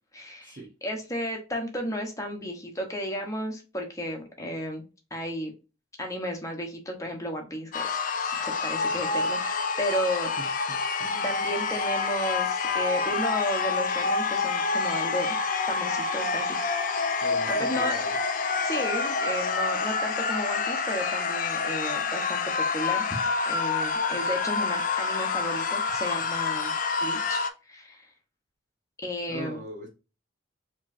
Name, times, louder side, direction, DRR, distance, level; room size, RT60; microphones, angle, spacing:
voice 1, 0.1-4.8 5.1-5.5 6.0-7.9 8.4-10.6 11.2-15.4 15.7-16.6 17.5-17.9 18.6-23.1 23.4-26.7 27.0-27.4 27.7-28.1 29.0-29.6, equal, 15° left, 0.9 m, -33 dB
sound 1, 7.7-27.5, left 4 dB, 40° left, 0.5 m, -27 dB
voice 2, 10.7-11.3 17.2-18.1 29.3-29.9, right 1 dB, 40° right, 1.0 m, -40 dB
4.5 x 3.0 x 2.6 m
head